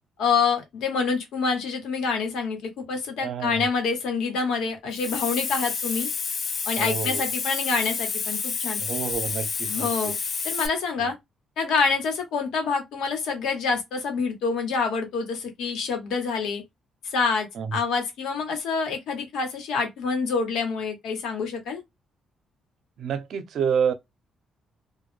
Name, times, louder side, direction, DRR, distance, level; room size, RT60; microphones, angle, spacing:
voice 1, 0.2-6.1 6.6-8.8 9.7-10.2 10.4-11.1 11.6-16.6 17.0-21.8, left 5 dB, 85° left, 1.0 m, -27 dB
voice 2, 3.2-3.7 6.8-7.2 8.8-10.1 11.0-11.1 17.6-17.7 23.0-23.9, right 7 dB, 70° right, 0.5 m, -28 dB
Hiss, 4.9-10.7, left 5 dB, 50° left, 0.5 m, -29 dB
2.2 x 2.0 x 3.1 m
cardioid pair, 90°, 0 cm